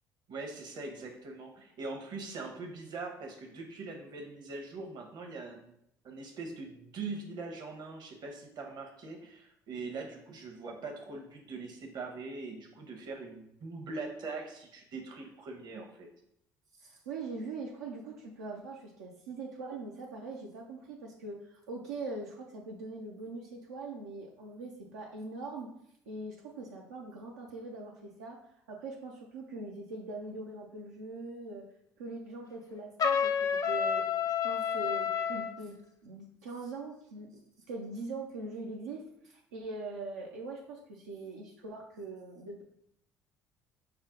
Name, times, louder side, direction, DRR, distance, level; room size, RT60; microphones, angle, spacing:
voice 1, 0.3-5.7 6.0-16.1, right 3 dB, 55° right, 3 dB, 1.0 m, -42 dB
voice 2, 16.7-25.7 26.1-28.4 28.7-31.7 32.0-37.4 37.7-42.6, right 3 dB, 90° right, -1 dB, 0.5 m, -42 dB
Trumpet, 33.0-35.5, left 7 dB, 45° left, 0.5 m, -29 dB
5.6 x 2.1 x 3.7 m, 0.76 s
hypercardioid pair, 60°, 9 cm